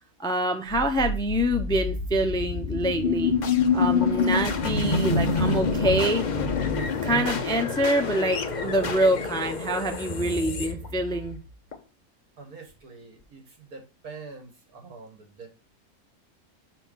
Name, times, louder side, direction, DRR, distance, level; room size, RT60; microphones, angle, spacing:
voice 1, 0.2-3.3 3.7-6.2 7.0-11.4, right 1 dB, 5° left, 6 dB, 0.5 m, -26 dB
sound 1, 0.7-11.8, left 4 dB, 40° left, 0.7 m, -27 dB
voice 2, 12.4-15.5, right 4 dB, 85° right, 3 dB, 2.3 m, -45 dB
5.8 x 4.2 x 5.4 m, 0.31 s
omnidirectional pair, 1.5 m